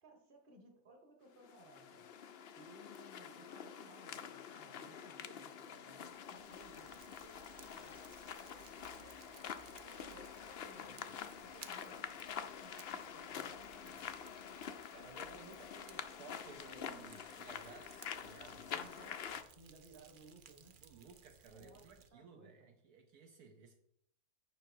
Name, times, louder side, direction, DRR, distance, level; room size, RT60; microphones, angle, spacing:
voice 1, 0.0-2.1 2.6-7.9 9.0-13.9 18.7-20.8 21.5-22.7, right 1 dB, 35° right, 2 dB, 1.6 m, -61 dB
sound 1, 1.4-19.4, left 8 dB, 65° left, 0.6 m, -47 dB
Fire, 5.9-22.1, right 7 dB, 90° right, 0.4 m, -61 dB
voice 2, 14.9-18.7 20.8-23.8, right 5 dB, 70° right, 4 dB, 1.3 m, -57 dB
9.5 x 5.4 x 4.5 m, 0.73 s
omnidirectional pair, 1.7 m